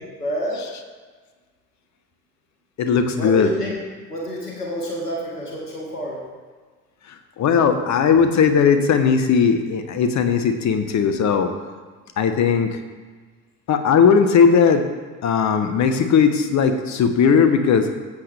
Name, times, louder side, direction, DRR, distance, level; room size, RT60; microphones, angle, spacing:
voice 1, 0.2-0.6 3.1-3.7 4.1-6.2, equal, 90° left, -2 dB, 1.7 m, -28 dB
voice 2, 2.8-3.5 7.1-11.5 12.2-12.8 13.7-14.9 15.2-17.9, left 6 dB, 40° left, 8 dB, 1.1 m, -18 dB
14.5 x 8.0 x 3.3 m, 1.4 s
figure-of-eight pair, 60°, 45 cm